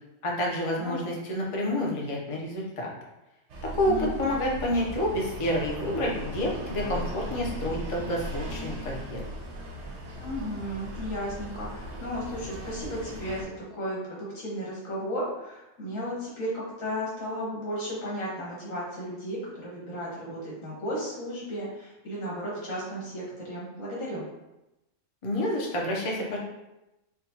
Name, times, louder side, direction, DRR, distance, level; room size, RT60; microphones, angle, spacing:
voice 1, 0.2-2.9 3.7-9.2 25.2-26.4, left 1 dB, 50° left, -2 dB, 0.4 m, -29 dB
sound 1, 3.5-13.4, equal, 65° right, 0.8 m, -38 dB
voice 2, 10.2-24.2, equal, 70° left, -6 dB, 1.6 m, -34 dB
4.3 x 2.2 x 2.7 m, 0.96 s
omnidirectional pair, 1.5 m